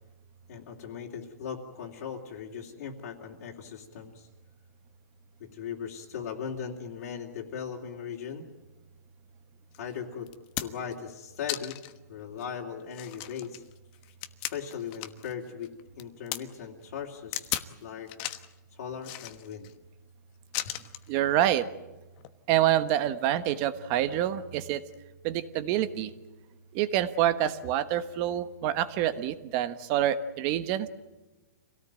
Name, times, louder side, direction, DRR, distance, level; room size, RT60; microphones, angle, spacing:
voice 1, 0.5-4.3 5.4-8.5 9.8-10.3 10.6-11.8 12.1-13.6 14.5-18.1 18.7-19.7, left 7 dB, 55° left, -3 dB, 3.0 m, -38 dB
sound 1, 9.7-9.8 10.3-10.9 11.5-12.0 12.4-12.5 12.9-15.3 15.6-16.4 17.3-17.7 18.1-18.5 19.0-19.7 20.5-21.1 22.2-22.3, left 15 dB, 30° left, 1.2 m, -36 dB
voice 2, 21.1-21.6 22.5-24.8 25.2-26.1 26.7-30.9, right 12 dB, 30° right, 12 dB, 1.3 m, -27 dB
27.0 x 18.0 x 9.0 m, 1.1 s
hypercardioid pair, 155°, 10 cm